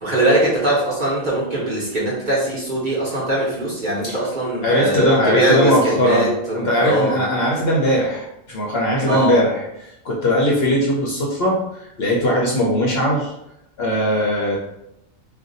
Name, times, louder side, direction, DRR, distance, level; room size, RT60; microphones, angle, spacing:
voice 1, 0.0-7.2 9.1-9.4, right 1 dB, 40° right, -7 dB, 0.8 m, -21 dB
voice 2, 4.6-13.3 13.8-14.6, equal, 60° left, -4 dB, 0.7 m, -20 dB
2.5 x 2.3 x 3.8 m, 0.83 s
omnidirectional pair, 1.5 m